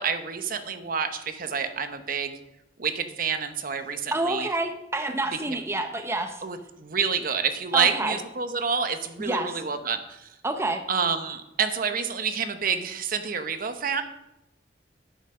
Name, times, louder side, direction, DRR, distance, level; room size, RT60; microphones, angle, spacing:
voice 1, 0.0-2.4 2.8-4.5 5.5-5.6 6.4-10.3 10.9-14.0, right 6 dB, 55° right, 8 dB, 0.9 m, -28 dB
voice 2, 4.1-6.4 7.7-8.2 9.2-9.6 10.4-10.8, right 2 dB, 15° right, 6 dB, 0.7 m, -28 dB
10.0 x 8.1 x 5.4 m, 0.87 s
head